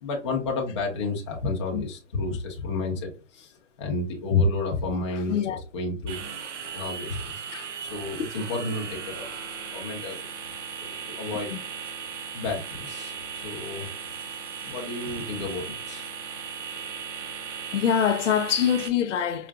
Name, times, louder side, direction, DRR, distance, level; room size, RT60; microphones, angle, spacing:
voice 1, 0.0-3.5 3.8-6.2 6.7-7.2 7.8-9.3 9.7-10.3 10.8-11.5 12.3-13.9 14.6-16.1, left 3 dB, 25° left, 0.7 m, -30 dB
voice 2, 5.1-5.6 7.5-7.7 8.2-8.3 11.5-11.6 17.7-19.5, left 8 dB, 70° left, 0.6 m, -25 dB
sound 1, 6.1-18.9, right 6 dB, 70° right, 0.8 m, -37 dB
4.8 x 2.4 x 2.2 m
hypercardioid pair, 170°, 38 cm